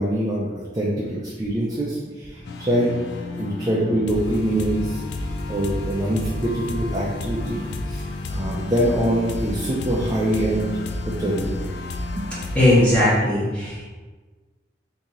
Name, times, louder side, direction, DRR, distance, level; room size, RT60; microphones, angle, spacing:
voice 1, 0.0-2.9 3.4-10.7 11.0-11.6 12.2-12.3, right 1 dB, 20° right, -4 dB, 0.4 m, -24 dB
sound 1, 2.4-12.9, left 2 dB, 65° left, 0.4 m, -31 dB
voice 2, 12.5-13.9, left 1 dB, 5° left, -10 dB, 1.0 m, -18 dB
2.9 x 2.8 x 3.7 m, 1.3 s
head